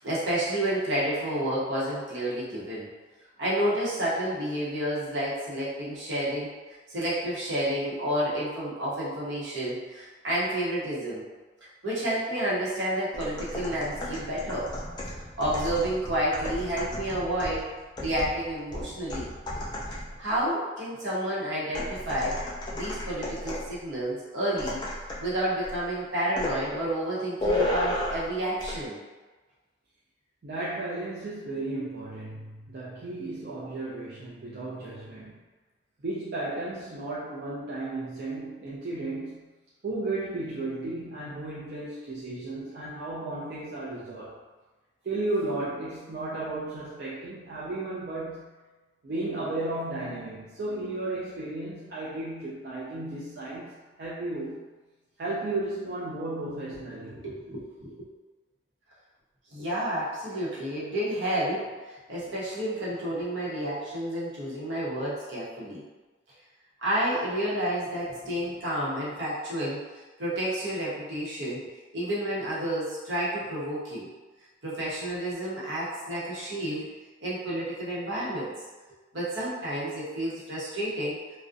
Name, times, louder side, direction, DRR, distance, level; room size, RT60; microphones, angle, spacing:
voice 1, 0.0-2.9 3.4-6.5 6.9-11.2 11.8-14.7 15.4-17.7 18.0-19.3 20.2-22.3 22.7-29.0 57.1-58.1 59.5-65.8 66.8-69.8 70.2-74.1 74.6-77.0 77.2-78.5 79.1-81.2, right 1 dB, 80° right, -7 dB, 0.8 m, -30 dB
sound 1, 13.1-20.2 21.7-23.8 24.6-25.3 25.6-25.9 26.4-26.6 27.4-28.3 28.6-28.8, left 1 dB, 25° left, 0.3 m, -33 dB
voice 2, 30.4-35.4 36.0-39.4 39.8-44.4 45.0-48.5 49.0-54.6 55.2-57.2, right 2 dB, 55° right, -8 dB, 0.4 m, -34 dB
2.4 x 2.1 x 2.5 m, 1.2 s
head